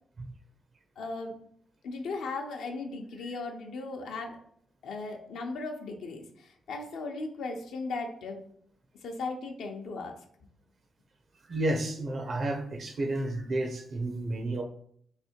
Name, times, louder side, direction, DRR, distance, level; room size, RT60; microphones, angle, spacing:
voice 1, 1.0-1.4 1.8-4.4 4.8-8.4 9.0-10.1, left 3 dB, 80° left, 3 dB, 0.7 m, -37 dB
voice 2, 11.5-14.6, right 2 dB, 60° right, 4 dB, 0.8 m, -31 dB
3.3 x 2.7 x 4.3 m, 0.65 s
supercardioid pair, 55°, 0 cm